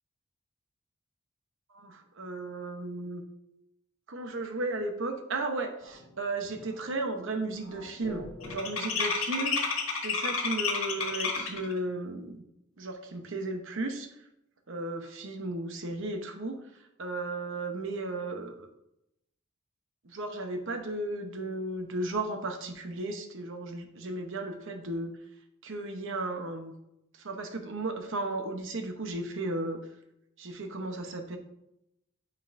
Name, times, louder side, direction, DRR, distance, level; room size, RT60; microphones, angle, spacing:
voice 1, 1.7-3.2 4.1-12.4 12.8-14.1 14.7-16.6 17.0-18.7 20.0-25.1 25.6-26.7 27.2-29.8 30.4-31.4, right 2 dB, 65° right, 6 dB, 0.9 m, -35 dB
sound 1, 6.0-6.1 6.5-6.8 7.1-11.7, left 5 dB, 85° left, 1.4 m, -31 dB
8.9 x 4.5 x 2.6 m, 0.84 s
head